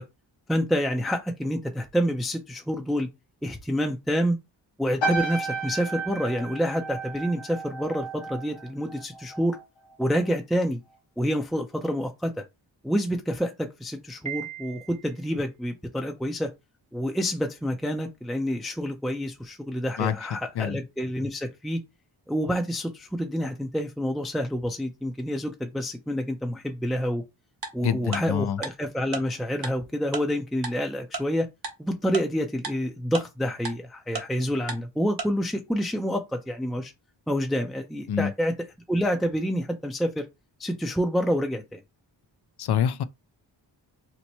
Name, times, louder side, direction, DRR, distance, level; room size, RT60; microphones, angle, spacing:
voice 1, 0.5-3.1 3.4-4.4 4.8-9.6 10.0-10.8 11.2-12.4 12.8-16.5 16.9-21.8 22.3-27.2 27.7-31.5 31.8-36.9 37.3-38.5 38.9-40.3 40.6-41.8, equal, ahead, 0.5 m, -28 dB
sound 1, 5.0-9.6 9.9-10.3, right 3 dB, 90° left, 1.1 m, -33 dB
Piano, 14.3-15.3, right 11 dB, 15° right, 0.9 m, -38 dB
Tick-tock, 27.6-27.7 28.1-28.2 28.6-28.7 29.1-29.2 29.6-29.7 30.1-30.2 30.6-30.7 31.1-31.2 31.6-31.7 32.1-32.2 32.6-32.7 33.1-33.2 33.6-33.7 34.1-34.2 34.7-34.8 35.2-35.3, right 4 dB, 55° right, 1.0 m, -31 dB
voice 2, 27.8-28.6 38.1-38.3 42.6-43.0, left 9 dB, 60° left, 0.5 m, -26 dB
3.0 x 2.1 x 4.1 m
cardioid pair, 60°, 44 cm